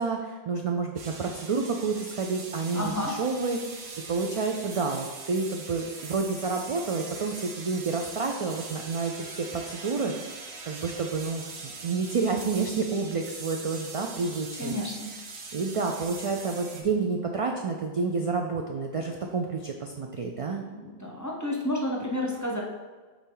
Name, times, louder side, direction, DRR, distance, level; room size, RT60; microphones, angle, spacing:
voice 1, 0.0-10.1 10.6-14.8 15.5-20.6, right 4 dB, 55° right, 2 dB, 0.3 m, -29 dB
sound 1, 1.0-16.8, right 4 dB, 75° right, 1.1 m, -42 dB
voice 2, 2.7-3.1 14.6-15.1 20.4-22.6, left 1 dB, 20° left, -1 dB, 0.8 m, -31 dB
7.1 x 4.1 x 3.8 m, 1.4 s
omnidirectional pair, 1.1 m